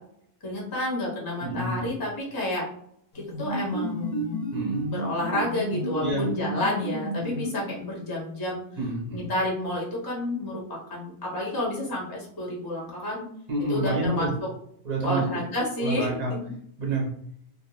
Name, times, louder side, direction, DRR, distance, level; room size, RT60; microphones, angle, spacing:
voice 1, 0.4-2.6 3.4-4.2 4.8-8.6 9.1-13.2 13.7-14.3 15.0-16.4, left 1 dB, 25° left, -3 dB, 0.6 m, -30 dB
voice 2, 1.4-1.9 4.5-4.9 6.0-6.3 8.8-9.3 13.5-14.3 14.8-15.2 15.8-16.3 16.8-17.1, right 2 dB, 45° right, -3 dB, 0.7 m, -28 dB
sound 1, 3.1-8.1, right 1 dB, 65° left, 0.9 m, -31 dB
2.4 x 2.1 x 3.0 m, 0.69 s
omnidirectional pair, 1.2 m